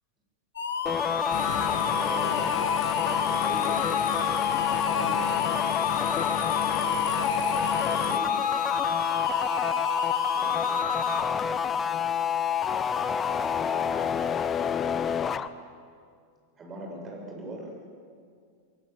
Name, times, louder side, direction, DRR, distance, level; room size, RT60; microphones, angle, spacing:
sound 1, 0.6-11.2, left 6 dB, 65° left, 2.1 m, -31 dB
sound 2, 0.9-15.5, left 7 dB, 25° left, 1.0 m, -28 dB
voice 1, 0.9-2.5 3.1-3.9 4.8-5.5 7.5-8.5 10.3-11.8 16.5-17.7, right 2 dB, 25° right, 0 dB, 7.5 m, -42 dB
sound 3, 1.3-8.2, left 13 dB, 50° left, 1.3 m, -34 dB
26.0 x 22.5 x 9.7 m, 2.2 s
figure-of-eight pair, 90°, 0 cm